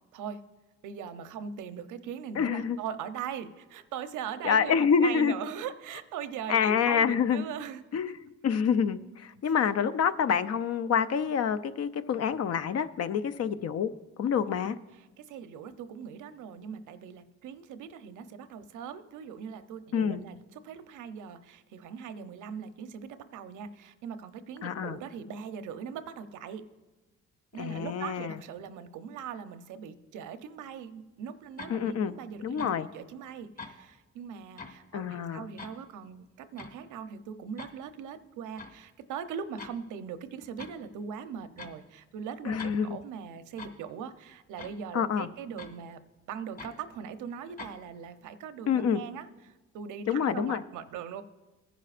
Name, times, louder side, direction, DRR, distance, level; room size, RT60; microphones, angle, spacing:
voice 1, 0.8-7.8 14.9-26.6 27.5-46.0 46.3-51.2, right 7 dB, 90° right, 10 dB, 0.8 m, -40 dB
voice 2, 2.4-2.8 4.4-5.3 6.5-7.4 7.9-8.1 8.4-13.9 14.2-14.8 19.9-20.2 24.6-25.0 27.6-28.4 31.7-32.1 32.4-32.9 34.9-35.5 42.4-43.0 44.9-45.3 48.7-49.0 50.1-50.6, left 7 dB, 55° left, 12 dB, 0.6 m, -27 dB
sound 1, 31.6-31.8 32.6-32.8 33.6-33.7 34.6-34.8 35.6-35.8 36.6-36.7 37.6-37.7 38.6-38.8 39.6-39.8 40.6-40.8 41.6-41.8 42.6-42.8 43.6-43.8 44.6-44.8 45.6-45.8 46.6-46.7 47.6-47.8, left 4 dB, 30° left, 1.9 m, -44 dB
21.0 x 10.0 x 2.5 m, 1.1 s
cardioid pair, 90°, 30 cm